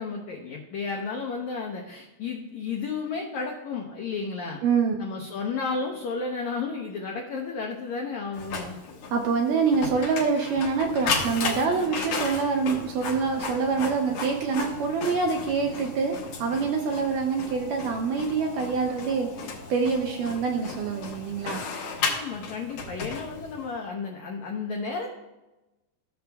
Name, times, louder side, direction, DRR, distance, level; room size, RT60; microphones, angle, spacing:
voice 1, 0.0-4.6 5.0-8.8 22.1-25.1, left 4 dB, 85° left, 0 dB, 1.6 m, -32 dB
voice 2, 4.6-5.0 9.1-21.6, right 5 dB, 80° right, 2 dB, 1.9 m, -26 dB
Printer, 8.3-23.7, left 4 dB, 70° left, 1.7 m, -34 dB
15.0 x 6.8 x 2.3 m, 1.0 s
omnidirectional pair, 4.4 m